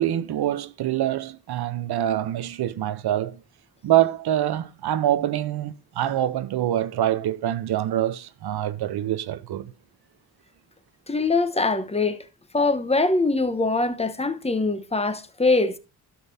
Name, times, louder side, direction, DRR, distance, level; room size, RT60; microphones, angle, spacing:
voice 1, 0.0-3.4 3.8-9.7, right 12 dB, 70° right, 0.7 m, -25 dB
voice 2, 11.1-12.2 12.5-15.8, left 3 dB, 15° left, 1.0 m, -23 dB
13.0 x 6.1 x 2.7 m
cardioid pair, 60°, 40 cm